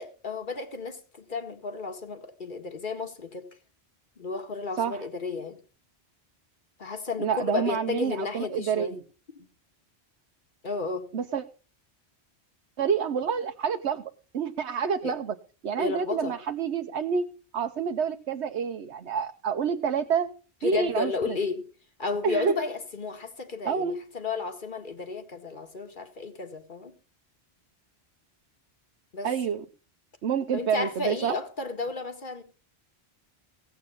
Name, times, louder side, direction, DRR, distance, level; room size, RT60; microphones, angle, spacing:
voice 1, 0.0-3.5 4.2-5.6 6.8-8.9 9.4-9.5 10.6-11.1 15.0-15.2 15.8-16.4 20.6-21.6 22.0-26.9 29.1-29.3 30.5-32.4, left 4 dB, 50° left, 1.9 m, -33 dB
voice 2, 7.2-9.0 11.1-11.4 12.8-14.0 14.3-15.3 15.6-17.3 17.5-20.3 20.6-21.4 22.2-22.5 23.6-24.0 29.2-29.6 30.2-31.4, right 6 dB, 85° right, 1.2 m, -28 dB
17.0 x 8.4 x 5.5 m
omnidirectional pair, 1.1 m